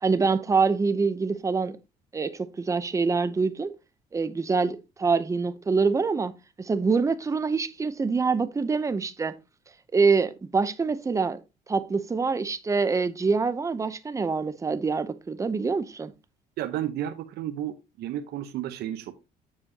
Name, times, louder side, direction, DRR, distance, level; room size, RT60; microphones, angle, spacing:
voice 1, 0.0-1.8 2.1-3.7 4.1-6.3 6.6-9.3 9.9-11.4 11.7-16.1, right 4 dB, 20° right, 0.6 m, -25 dB
voice 2, 16.6-19.1, right 11 dB, 75° right, 0.8 m, -32 dB
7.2 x 6.9 x 2.8 m
cardioid pair, 110°, 17 cm